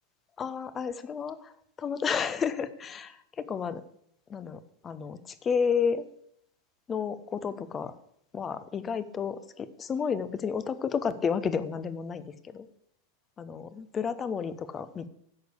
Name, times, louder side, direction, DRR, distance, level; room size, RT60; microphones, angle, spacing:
voice 1, 0.4-1.5 1.8-3.8 4.3-6.0 6.9-8.0 8.3-12.7 13.4-15.1, left 6 dB, 20° left, 13 dB, 1.0 m, -31 dB
11.5 x 8.0 x 8.3 m, 0.70 s
figure-of-eight pair, 90°, 0 cm